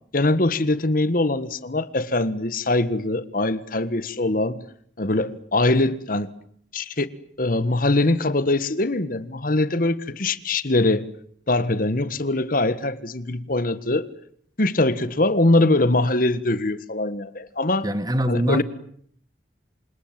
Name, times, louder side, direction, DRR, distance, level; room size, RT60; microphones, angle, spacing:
voice 1, 0.1-4.6 5.0-6.3 6.7-7.1 7.4-11.1 11.5-14.1 14.6-17.9 18.3-18.6, left 2 dB, 50° left, 1.5 m, -22 dB
voice 2, 17.8-18.6, equal, 20° right, 2.1 m, -23 dB
28.5 x 27.0 x 7.6 m
head